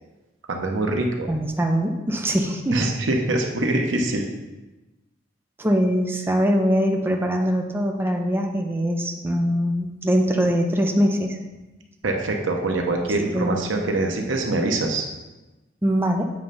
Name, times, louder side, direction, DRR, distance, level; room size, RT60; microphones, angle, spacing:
voice 1, 0.5-1.3 2.7-4.2 12.0-15.1, right 2 dB, 90° right, 2 dB, 1.0 m, -24 dB
voice 2, 1.3-2.8 5.6-11.4 13.3-13.7 15.8-16.2, equal, 10° right, 2 dB, 0.5 m, -22 dB
7.9 x 3.3 x 5.4 m, 1.1 s
head